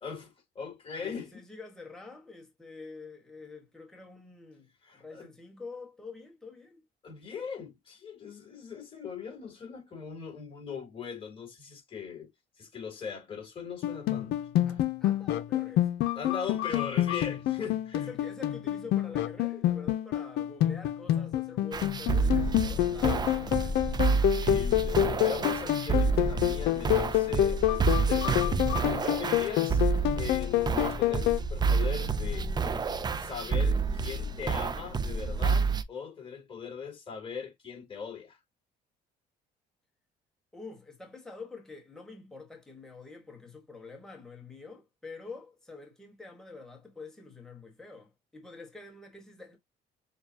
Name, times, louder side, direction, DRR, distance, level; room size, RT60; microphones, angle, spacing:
voice 1, 0.0-1.3 4.8-5.3 7.0-12.3 12.6-14.5 16.1-18.1 24.1-28.6 29.0-29.8 30.2-32.5 33.2-38.4, left 6 dB, 30° left, 2.8 m, -40 dB
voice 2, 1.0-6.8 14.6-16.2 17.9-24.0 40.5-49.6, left 4 dB, 5° left, 1.6 m, -47 dB
sound 1, 13.8-31.4, left 12 dB, 75° left, 0.6 m, -28 dB
sound 2, 21.7-35.8, right 4 dB, 25° right, 0.5 m, -29 dB
6.7 x 2.3 x 2.8 m
cardioid pair, 110°, 17 cm